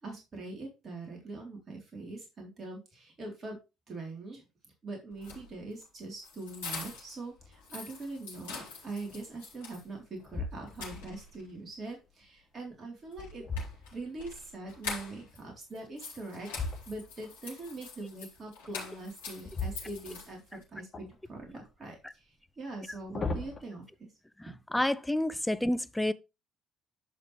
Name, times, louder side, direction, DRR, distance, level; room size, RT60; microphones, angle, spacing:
voice 1, 0.0-3.6 3.9-4.4 4.8-13.5 13.9-16.5 16.9-24.1 24.5-24.6, right 2 dB, 35° right, 3.7 m, -43 dB
sound 1, 5.1-7.2 7.5-9.8 10.2-10.3 10.7-11.5 13.1-15.4 15.7-20.6, left 4 dB, 70° left, 4.3 m, -44 dB
sound 2, 7.4-7.8 8.4-8.5 9.1-9.6 10.2-11.1 12.7-14.4 16.5-17.3 19.4-20.5 20.9-21.7 22.7-23.6, left 3 dB, 30° left, 2.6 m, -39 dB
voice 2, 24.7-26.1, left 1 dB, 5° left, 0.6 m, -28 dB
11.0 x 5.7 x 3.3 m
figure-of-eight pair, 50°, 0 cm